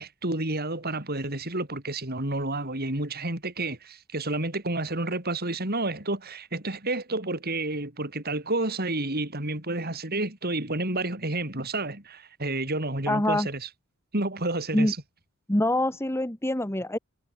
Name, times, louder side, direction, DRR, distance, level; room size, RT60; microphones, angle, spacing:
voice 1, 0.0-13.7 14.1-15.0, right 2 dB, 45° right, 5.5 m, -30 dB
voice 2, 13.1-13.5 14.7-14.9 15.5-17.0, left 1 dB, 10° left, 1.4 m, -25 dB
head